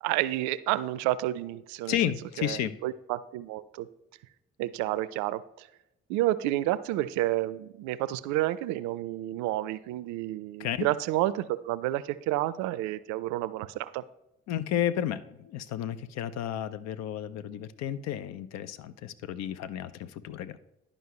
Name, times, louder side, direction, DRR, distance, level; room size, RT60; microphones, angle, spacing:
voice 1, 0.0-2.0 2.4-3.9 4.6-5.7 6.1-14.0, right 15 dB, 65° right, 16 dB, 0.5 m, -30 dB
voice 2, 1.8-2.8 10.6-10.9 14.5-20.6, left 11 dB, 60° left, 14 dB, 0.5 m, -32 dB
11.0 x 5.1 x 3.0 m, 0.89 s
hypercardioid pair, 45°, 31 cm